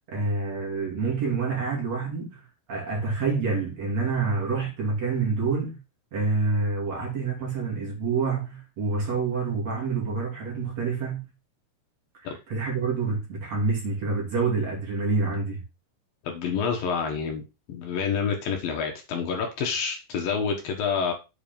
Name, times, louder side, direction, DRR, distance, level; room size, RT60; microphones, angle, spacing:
voice 1, 0.1-5.8 6.1-11.2 12.5-15.6, right 4 dB, 45° right, 3.8 m, -27 dB
voice 2, 16.2-17.4 17.7-21.1, left 6 dB, 65° left, 3.0 m, -28 dB
8.4 x 4.8 x 5.2 m
omnidirectional pair, 4.6 m